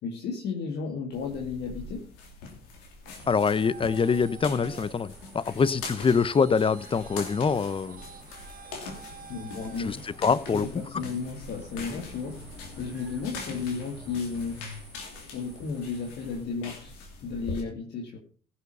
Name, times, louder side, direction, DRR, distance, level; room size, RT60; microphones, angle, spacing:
voice 1, 0.0-2.0 9.2-10.2 10.5-14.6 15.3-16.9 17.2-18.2, left 5 dB, 65° left, 2.2 m, -34 dB
sound 1, 1.1-17.6, left 3 dB, 85° left, 2.8 m, -42 dB
Traffic noise roadway noise, 2.9-10.7, right 7 dB, 50° right, 1.4 m, -49 dB
sound 2, 3.1-16.5, right 1 dB, 10° right, 2.7 m, -53 dB
voice 2, 3.3-8.0 9.8-10.7 10.9-11.0, left 5 dB, 30° left, 0.8 m, -25 dB
15.5 x 7.1 x 5.5 m
supercardioid pair, 65°, 19 cm